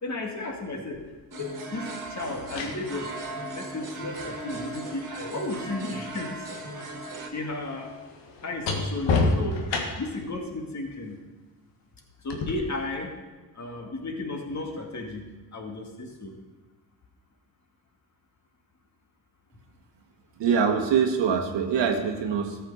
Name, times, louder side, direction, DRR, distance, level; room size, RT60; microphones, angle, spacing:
voice 1, 0.0-1.0 1.4-3.2 3.5-6.9 7.3-7.9 8.4-9.7 10.0-11.2 12.2-13.2 13.5-15.3 15.5-16.4, left 2 dB, 35° left, 2 dB, 2.2 m, -34 dB
sound 1, 0.9-1.1 2.2-6.2 6.5-10.2 12.3-12.5, left 3 dB, 70° left, 1.6 m, -31 dB
sound 2, 1.3-7.3, right 2 dB, 40° right, 2.0 m, -38 dB
voice 2, 20.4-22.6, right 6 dB, 65° right, 5 dB, 1.4 m, -24 dB
13.5 x 6.6 x 5.5 m, 1.2 s
hypercardioid pair, 50°, 46 cm